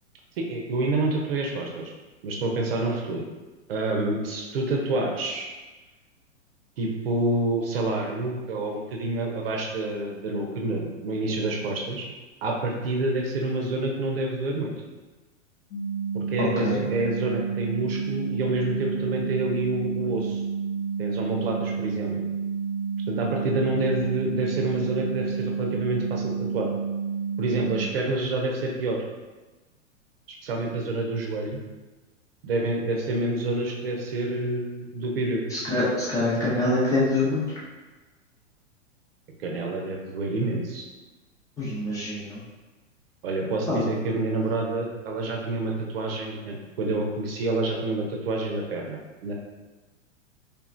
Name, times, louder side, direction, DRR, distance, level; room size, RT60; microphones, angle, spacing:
voice 1, 0.4-1.9 2.2-3.2 3.7-5.5 6.8-12.1 12.4-14.8 16.1-20.4 21.0-22.1 23.1-26.7 27.4-29.0 30.4-31.6 32.4-35.4 39.4-40.8 43.2-49.0 49.2-49.3, right 2 dB, 50° right, 0 dB, 0.6 m, -28 dB
sound 1, 15.7-27.8, right 6 dB, 65° left, 0.8 m, -30 dB
voice 2, 16.4-16.8 35.5-37.4 41.6-42.4 43.7-43.8, left 2 dB, 10° left, -8 dB, 0.6 m, -25 dB
3.3 x 2.9 x 2.5 m, 1.2 s
figure-of-eight pair, 105°, 38 cm